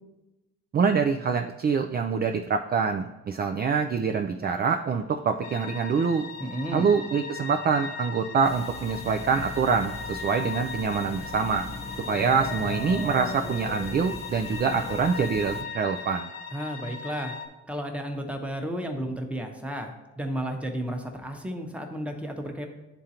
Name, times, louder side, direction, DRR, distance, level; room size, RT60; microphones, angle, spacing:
voice 1, 0.7-6.2 6.7-11.7 12.1-16.3, right 5 dB, 35° right, 5 dB, 0.4 m, -25 dB
sound 1, 5.4-17.5, left 5 dB, 70° left, 1.1 m, -38 dB
voice 2, 6.4-6.9 16.5-17.4 17.7-22.7, equal, 5° right, 3 dB, 0.9 m, -33 dB
sound 2, 8.4-15.6, left 2 dB, 20° left, 0.6 m, -38 dB
10.5 x 3.7 x 2.9 m, 1.0 s
cardioid pair, 90°, 30 cm